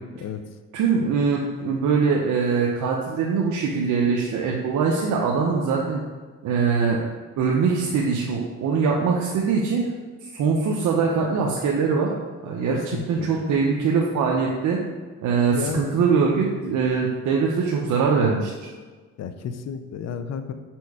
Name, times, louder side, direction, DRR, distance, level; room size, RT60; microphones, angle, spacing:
voice 1, 0.7-6.0 6.4-7.0 7.4-9.9 10.2-12.1 12.4-14.8 15.2-18.7, right 5 dB, 75° right, -2 dB, 0.8 m, -22 dB
voice 2, 12.7-13.3 15.5-15.9 19.2-20.5, left 7 dB, 60° left, 10 dB, 0.6 m, -32 dB
5.3 x 4.4 x 4.8 m, 1.4 s
cardioid pair, 90°, 30 cm